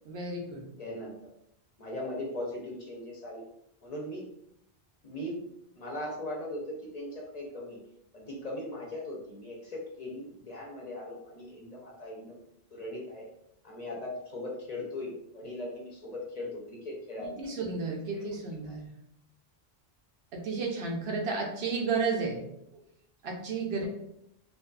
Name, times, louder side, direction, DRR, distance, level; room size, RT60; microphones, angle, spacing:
voice 1, 0.1-0.6 17.2-18.9 20.3-22.5 23.2-23.9, right 4 dB, 85° right, 1 dB, 0.9 m, -32 dB
voice 2, 0.8-1.1 1.8-3.4 3.8-4.2 5.0-5.4 5.8-7.8 8.1-12.4 12.7-13.3 13.6-17.5 18.1-18.2, left 1 dB, 50° left, -3 dB, 0.6 m, -39 dB
2.6 x 2.3 x 2.3 m, 0.78 s
omnidirectional pair, 1.0 m